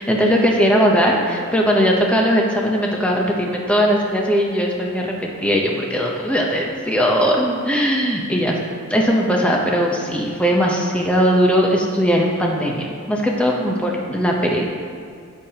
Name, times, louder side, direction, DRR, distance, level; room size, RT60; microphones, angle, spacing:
voice 1, 0.0-8.6 8.9-14.6, equal, 5° left, -1 dB, 0.8 m, -19 dB
10.5 x 8.4 x 2.9 m, 2.3 s
head